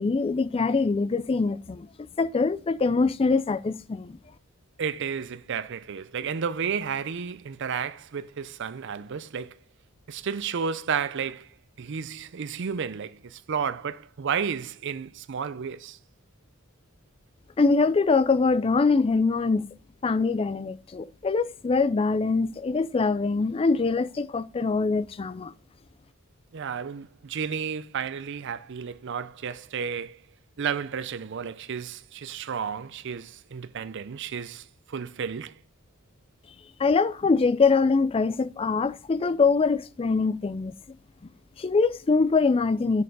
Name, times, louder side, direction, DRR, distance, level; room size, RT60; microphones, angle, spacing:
voice 1, 0.0-1.9 2.2-4.2 17.6-19.7 20.0-25.5 36.8-40.7 41.6-43.0, left 4 dB, 25° left, 0.3 m, -23 dB
voice 2, 4.8-9.6 10.1-11.5 11.8-16.0 26.5-30.2 30.6-35.6, right 6 dB, 55° right, 0.5 m, -32 dB
6.6 x 6.6 x 5.3 m
head